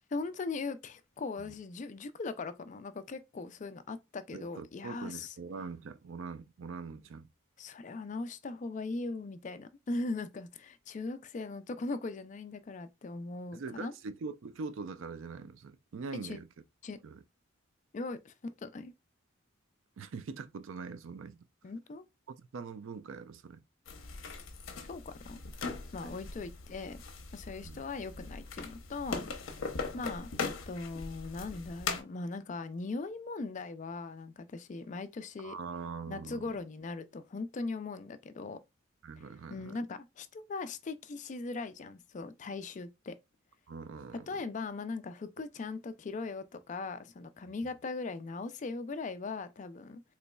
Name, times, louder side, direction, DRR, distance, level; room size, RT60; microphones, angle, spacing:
voice 1, 0.1-5.3 7.6-13.9 16.2-16.4 16.8-17.0 17.9-18.9 21.6-22.0 24.9-25.4 25.9-27.0 27.3-29.3 29.9-35.5 36.1-38.6 39.5-43.1 44.1-50.0, left 3 dB, 35° left, 0.3 m, -39 dB
voice 2, 4.3-7.3 13.5-16.5 17.0-17.2 20.0-21.4 22.3-23.6 26.0-26.1 27.6-27.8 29.9-30.0 35.4-36.5 39.0-39.8 43.7-44.4, right 4 dB, 70° right, 0.4 m, -43 dB
sound 1, 23.9-32.0, left 4 dB, 70° left, 0.7 m, -40 dB
4.1 x 3.0 x 2.2 m
head